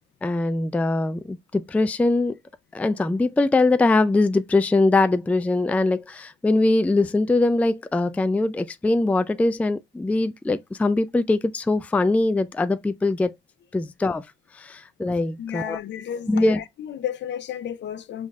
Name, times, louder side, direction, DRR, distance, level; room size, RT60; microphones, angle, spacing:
voice 1, 0.2-2.4 2.7-13.3 13.7-14.3 14.5-15.8 16.3-16.6, left 2 dB, 5° left, 0.3 m, -22 dB
voice 2, 15.4-18.3, left 10 dB, 65° left, 0.6 m, -32 dB
5.6 x 3.1 x 2.3 m
cardioid pair, 90°, 20 cm